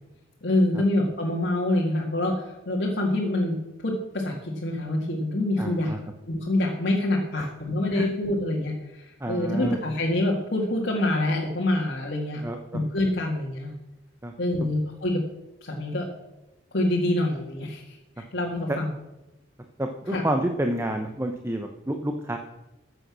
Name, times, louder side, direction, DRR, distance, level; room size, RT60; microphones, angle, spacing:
voice 1, 0.4-3.6 3.8-6.0 6.3-12.4 12.7-13.7 14.4-15.2 15.6-16.1 16.7-18.0 18.3-18.9 20.1-20.2, left 1 dB, 55° left, -2 dB, 1.9 m, -26 dB
voice 2, 5.6-6.0 7.4-7.5 7.9-8.1 9.2-9.8 12.4-12.8 14.2-14.3 18.7-18.8 19.8-22.4, right 1 dB, 15° right, 5 dB, 0.7 m, -29 dB
14.5 x 8.0 x 6.2 m, 0.99 s
head